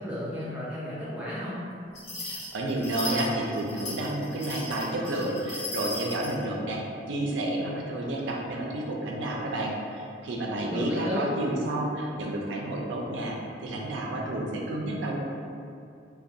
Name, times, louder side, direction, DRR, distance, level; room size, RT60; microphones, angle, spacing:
voice 1, 0.0-1.7 10.6-11.3, left 1 dB, 10° right, -9 dB, 0.4 m, -33 dB
sound 1, 1.9-6.3, left 2 dB, 70° left, 0.9 m, -36 dB
voice 2, 2.2-6.8 7.1-15.2, right 1 dB, 85° right, -1 dB, 0.4 m, -30 dB
2.4 x 2.1 x 2.6 m, 2.4 s
head